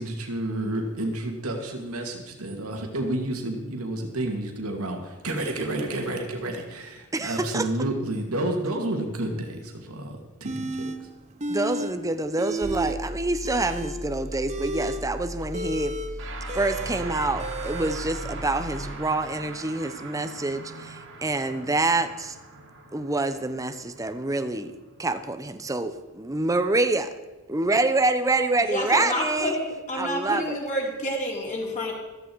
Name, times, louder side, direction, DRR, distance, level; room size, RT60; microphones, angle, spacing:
voice 1, 0.0-11.1, right 1 dB, 80° right, 2 dB, 2.4 m, -30 dB
voice 2, 7.1-7.7 11.5-15.9 16.5-22.3 22.9-24.7 25.0-27.1 27.5-29.6 30.0-30.6, right 2 dB, 15° right, 9 dB, 0.7 m, -26 dB
sound 1, 10.5-11.0 11.4-11.9 12.2-13.0 13.3-18.0, right 1 dB, 30° right, 1.1 m, -33 dB
sound 2, 12.6-19.0, left 1 dB, 10° left, 3.2 m, -37 dB
sound 3, 16.2-25.7, right 3 dB, 60° right, 2.5 m, -41 dB
voice 3, 28.6-31.9, left 1 dB, 35° left, -3 dB, 4.2 m, -29 dB
14.5 x 14.0 x 4.7 m, 1.2 s
head